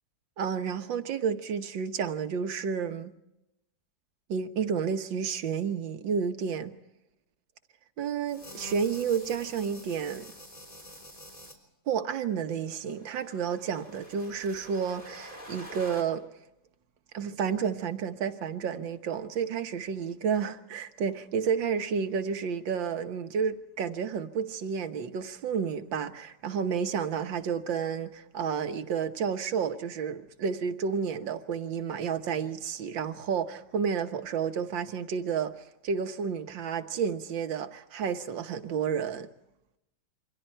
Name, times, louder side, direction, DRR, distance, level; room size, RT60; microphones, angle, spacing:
voice 1, 0.4-3.1 4.3-6.7 8.0-10.3 11.9-16.2 17.1-39.3, right 6 dB, 80° right, 1.9 m, -31 dB
sound 1, 8.2-11.6 12.7-16.0, equal, 20° left, 3.7 m, -47 dB
28.0 x 24.0 x 4.5 m
omnidirectional pair, 2.0 m